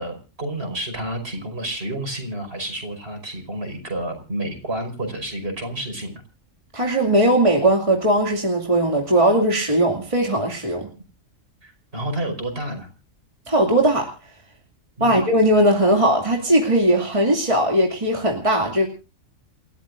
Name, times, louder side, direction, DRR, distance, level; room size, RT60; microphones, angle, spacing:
voice 1, 0.0-6.2 11.6-12.9 15.0-15.2, right 1 dB, 50° right, 5 dB, 5.6 m, -30 dB
voice 2, 6.7-10.9 13.5-14.1 15.0-18.9, right 1 dB, 25° right, 0 dB, 2.5 m, -19 dB
29.0 x 13.5 x 2.6 m, 0.34 s
omnidirectional pair, 1.4 m